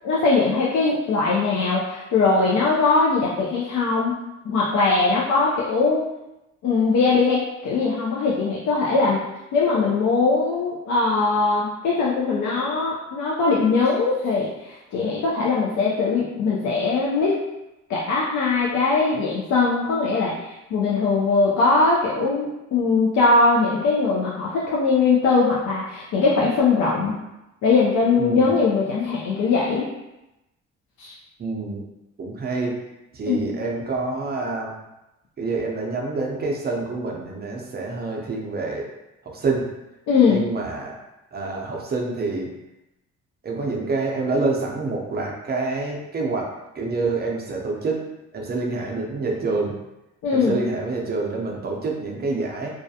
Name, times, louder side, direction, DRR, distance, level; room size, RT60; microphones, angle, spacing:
voice 1, 0.0-4.1 4.4-6.0 6.6-9.2 9.5-17.4 17.9-27.2 27.6-29.9 31.0-31.1 33.3-33.5 40.1-40.4 50.2-50.6, left 4 dB, 70° left, -5 dB, 0.5 m, -21 dB
voice 2, 28.2-28.5 31.4-31.8 32.2-32.7 33.1-34.7 35.4-38.9 39.2-39.7 40.3-41.0 41.3-42.5 43.4-46.5 46.7-48.0 48.3-49.7 50.3-52.7, right 3 dB, 35° right, -1 dB, 0.5 m, -27 dB
2.3 x 2.2 x 2.7 m, 0.95 s
cardioid pair, 90°, 30 cm